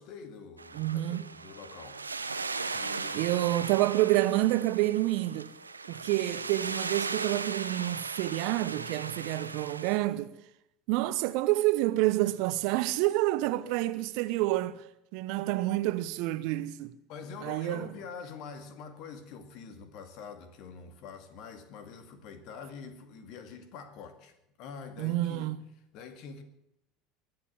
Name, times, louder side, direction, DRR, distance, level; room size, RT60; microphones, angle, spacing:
voice 1, 0.0-2.0 2.7-3.3 17.1-25.5 25.9-26.4, left 5 dB, 55° left, 2.2 m, -45 dB
sound 1, 0.6-10.0, right 4 dB, 90° right, 0.9 m, -38 dB
voice 2, 0.7-1.3 2.8-2.9 3.1-5.5 5.9-10.3 10.9-14.8 15.1-16.9 17.4-17.9 25.0-25.6, right 17 dB, 60° right, 0.9 m, -28 dB
22.5 x 7.7 x 7.5 m
figure-of-eight pair, 70°, 0 cm